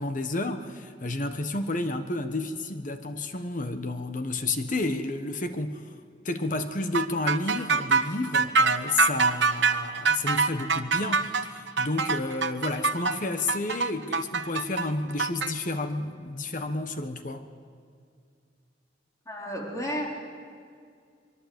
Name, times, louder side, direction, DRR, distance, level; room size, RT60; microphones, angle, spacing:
voice 1, 0.0-5.9 6.2-17.4, left 2 dB, 45° left, 8 dB, 1.3 m, -31 dB
sound 1, 6.9-15.5, right 4 dB, 70° right, 1.1 m, -24 dB
voice 2, 19.3-20.1, equal, 20° left, -3 dB, 4.4 m, -32 dB
24.5 x 23.0 x 8.1 m, 2.2 s
head